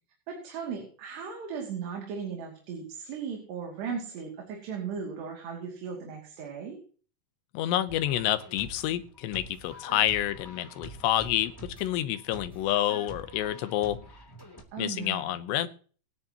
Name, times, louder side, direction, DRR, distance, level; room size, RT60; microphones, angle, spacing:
voice 1, 0.3-6.8 14.7-15.3, right 6 dB, 75° right, 0 dB, 4.8 m, -37 dB
voice 2, 7.5-14.0 14.8-15.7, left 13 dB, 85° left, 11 dB, 3.1 m, -28 dB
sound 1, 7.9-14.6, right 1 dB, 5° left, 2.7 m, -46 dB
25.0 x 9.8 x 3.0 m, 0.42 s
omnidirectional pair, 4.9 m